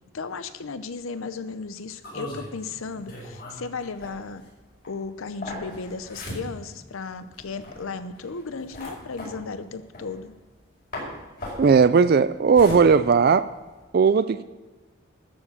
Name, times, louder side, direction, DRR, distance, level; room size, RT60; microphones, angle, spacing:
voice 1, 0.1-4.4 4.9-10.3, left 4 dB, 80° left, 12 dB, 0.7 m, -35 dB
sound 1, 2.0-10.6 10.9-13.8, left 1 dB, 45° left, 5.3 m, -38 dB
voice 2, 11.6-13.5 13.9-14.4, right 5 dB, 45° right, 14 dB, 0.3 m, -17 dB
13.5 x 7.2 x 7.1 m, 1.2 s
head